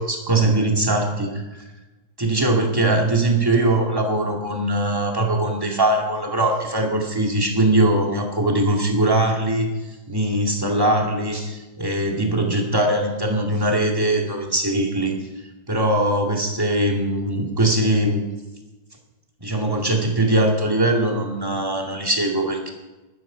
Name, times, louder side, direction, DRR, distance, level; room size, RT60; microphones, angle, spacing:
voice 1, 0.0-1.6 2.2-9.7 10.1-15.1 15.7-18.2 19.4-22.7, right 1 dB, 15° right, 1 dB, 2.2 m, -21 dB
13.0 x 12.5 x 5.0 m, 1.1 s
omnidirectional pair, 1.8 m